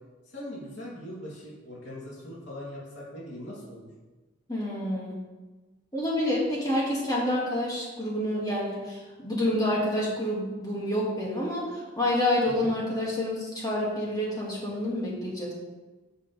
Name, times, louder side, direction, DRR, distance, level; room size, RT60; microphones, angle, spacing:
voice 1, 0.3-3.9 12.4-12.7, left 1 dB, 65° left, -7 dB, 3.1 m, -41 dB
voice 2, 4.5-5.2 5.9-15.5, left 1 dB, 20° left, -5 dB, 2.3 m, -28 dB
13.5 x 6.9 x 3.5 m, 1.3 s
head